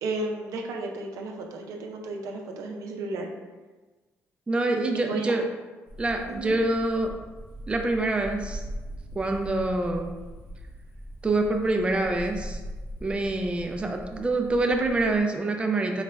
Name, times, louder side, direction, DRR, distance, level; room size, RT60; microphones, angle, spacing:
voice 1, 0.0-3.3 4.9-5.3 6.3-6.6, right 2 dB, 75° right, 2 dB, 0.5 m, -33 dB
voice 2, 4.5-5.5 6.0-7.1 7.7-8.6 9.2-10.1 11.2-12.6 13.0-16.0, right 2 dB, 20° right, 3 dB, 0.4 m, -26 dB
sound 1, 5.9-15.2, equal, 45° left, 0.8 m, -41 dB
3.9 x 2.2 x 3.3 m, 1.2 s
cardioid pair, 85°, 6 cm